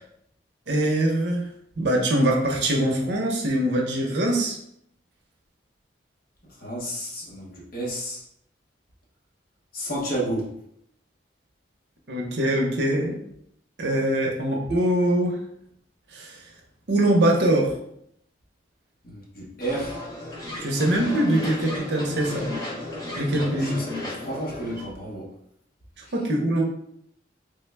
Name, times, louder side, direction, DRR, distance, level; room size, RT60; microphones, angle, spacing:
voice 1, 0.7-1.5 1.8-4.6 12.1-13.2 13.8-15.4 16.1-16.4 16.9-17.8 20.6-22.5 23.2-23.8 26.1-26.6, right 1 dB, 65° right, 0 dB, 0.7 m, -23 dB
voice 2, 6.4-8.2 9.7-10.5 19.0-20.0 23.3-25.3 26.0-26.1, right 1 dB, 50° left, -4 dB, 0.9 m, -32 dB
sound 1, 19.6-24.8, left 2 dB, 20° left, 0.7 m, -34 dB
3.3 x 2.1 x 3.3 m, 0.71 s
head